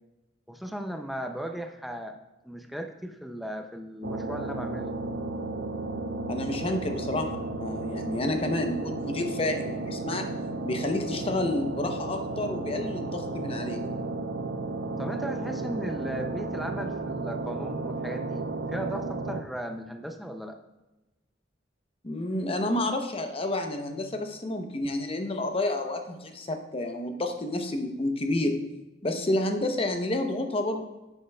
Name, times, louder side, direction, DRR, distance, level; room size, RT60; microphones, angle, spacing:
voice 1, 0.5-2.2 2.4-5.0 15.0-20.6, equal, ahead, 5 dB, 0.4 m, -36 dB
sound 1, 4.0-19.4, right 3 dB, 65° right, 0.6 m, -33 dB
voice 2, 6.3-10.3 10.6-13.8 22.0-28.6 29.0-30.8, left 1 dB, 30° left, 5 dB, 0.8 m, -30 dB
9.9 x 8.1 x 2.3 m, 1.0 s
head